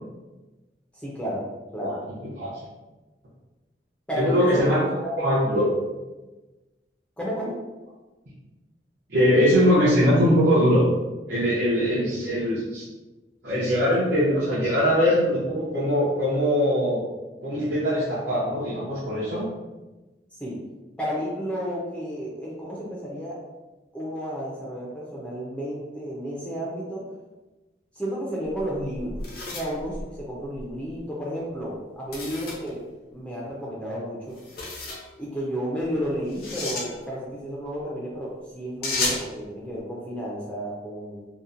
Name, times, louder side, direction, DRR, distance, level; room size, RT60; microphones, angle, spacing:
voice 1, 1.0-1.4 1.7-2.0 4.1-5.1 7.2-7.5 20.4-20.6 21.0-23.4 23.9-27.0 27.9-29.2 29.5-32.8 33.1-34.4 35.2-41.3, equal, 5° left, -6 dB, 0.4 m, -32 dB
voice 2, 4.2-4.8 5.2-5.6 9.1-10.8 11.3-12.8 13.4-17.0 17.4-19.5, equal, 70° right, -8 dB, 0.7 m, -21 dB
sound 1, 28.5-30.7 32.1-32.7 34.3-35.0 36.3-36.9 38.8-39.3, left 2 dB, 55° left, 0.5 m, -32 dB
2.7 x 2.0 x 2.4 m, 1.1 s
head